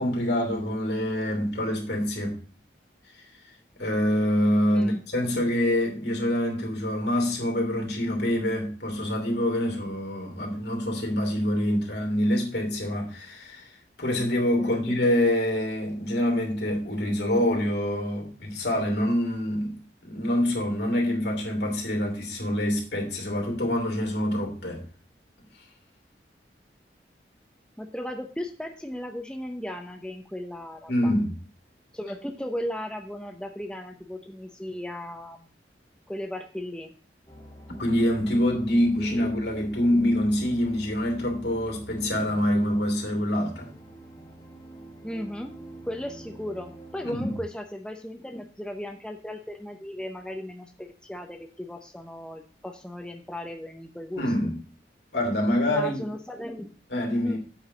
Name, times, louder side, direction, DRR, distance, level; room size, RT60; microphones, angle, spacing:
voice 1, 0.0-2.4 3.8-13.7 14.0-19.8 20.0-24.8 30.9-31.3 37.8-43.7 47.0-47.3 54.2-54.6 55.1-56.1 56.9-57.4, left 1 dB, 70° left, 2.9 m, -26 dB
voice 2, 14.6-15.0 27.8-31.1 31.9-35.5 36.1-36.9 39.0-39.3 45.0-45.5 45.8-54.2 55.7-56.7 57.2-57.4, left 1 dB, 5° left, 0.6 m, -36 dB
sound 1, 37.3-47.4, right 1 dB, 20° left, 2.4 m, -46 dB
8.1 x 4.7 x 6.9 m
head